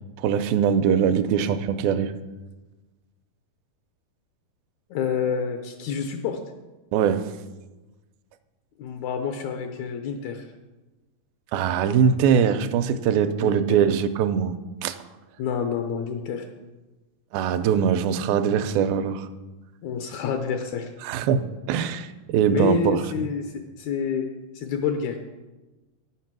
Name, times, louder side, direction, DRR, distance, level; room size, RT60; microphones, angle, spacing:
voice 1, 0.2-2.1 6.9-7.3 11.5-14.6 14.8-15.0 17.3-19.3 21.0-23.0, right 8 dB, 85° right, 10 dB, 2.3 m, -22 dB
voice 2, 4.9-6.4 8.8-10.5 13.4-13.8 15.4-16.5 19.8-20.9 22.5-24.3 24.5-25.2, left 6 dB, 85° left, 6 dB, 1.6 m, -28 dB
9.2 x 7.8 x 6.0 m, 1.2 s
omnidirectional pair, 4.2 m